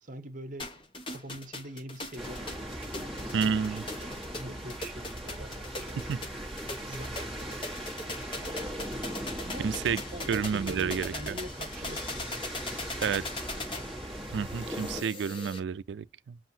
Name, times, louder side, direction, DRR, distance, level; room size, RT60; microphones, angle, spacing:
voice 1, 0.0-6.6 6.9-8.7 9.4-9.7 10.1-13.6, right 1 dB, 45° right, 0.9 m, -45 dB
sound 1, 0.6-15.6, left 2 dB, 30° left, 1.1 m, -40 dB
sound 2, 2.2-15.0, equal, ahead, 1.6 m, -39 dB
voice 2, 3.3-3.8 6.1-6.2 9.6-10.0 10.3-11.3 13.0-13.2 14.3-16.4, right 6 dB, 80° right, 0.3 m, -30 dB
7.5 x 2.6 x 2.7 m
head